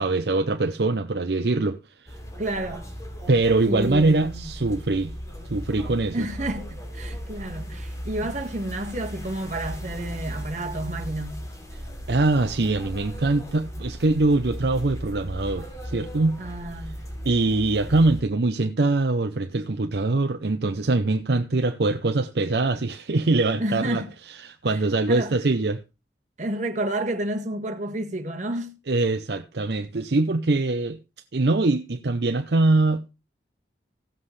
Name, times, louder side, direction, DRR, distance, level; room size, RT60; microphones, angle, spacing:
voice 1, 0.0-1.8 2.0-2.2 3.3-5.1 5.5-6.3 12.1-16.4 17.2-24.0 24.4-25.8 28.9-31.0 31.3-33.1, right 2 dB, 65° right, 0.7 m, -23 dB
sound 1, 2.1-18.2, equal, 20° left, 3.0 m, -37 dB
voice 2, 2.4-2.9 3.7-4.5 6.1-11.4 16.4-17.0 23.6-24.1 24.7-24.8 25.1-25.4 26.4-28.8, right 1 dB, 45° right, 1.7 m, -30 dB
16.0 x 7.6 x 3.2 m
head